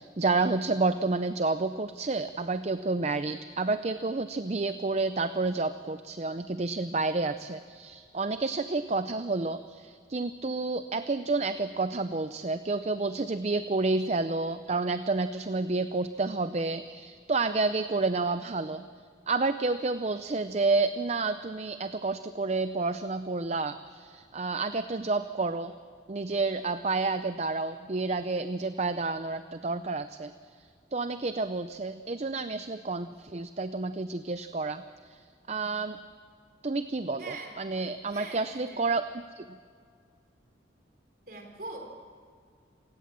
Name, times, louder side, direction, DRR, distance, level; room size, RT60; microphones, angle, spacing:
voice 1, 0.0-18.8 19.3-25.7 26.1-36.0 36.6-39.5, right 3 dB, 35° right, 11 dB, 0.6 m, -30 dB
voice 2, 37.2-37.5 38.1-38.8 41.3-41.9, right 2 dB, 55° right, 3 dB, 4.3 m, -42 dB
27.5 x 17.0 x 7.5 m, 2.1 s
head